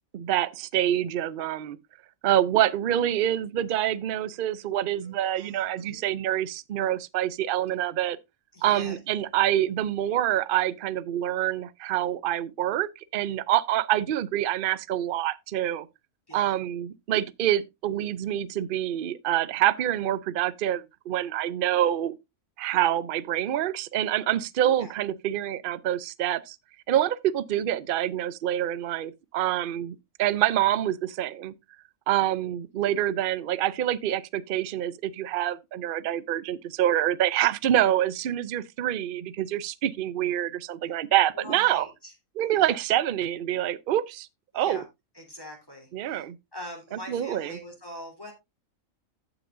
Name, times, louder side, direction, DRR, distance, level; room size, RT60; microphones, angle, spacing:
voice 1, 0.1-1.8 2.2-8.2 8.6-15.9 16.3-22.1 22.6-26.6 26.9-31.5 32.1-41.9 42.4-44.3 44.5-44.8 45.9-46.4 47.1-47.6, right 12 dB, 55° right, 0.6 m, -26 dB
voice 2, 5.0-6.1 8.5-9.0 16.3-16.5 24.8-24.9 41.3-42.1 42.6-42.8 44.5-44.8 45.1-48.3, left 1 dB, 15° left, 3.5 m, -43 dB
15.0 x 6.1 x 2.6 m
omnidirectional pair, 1.5 m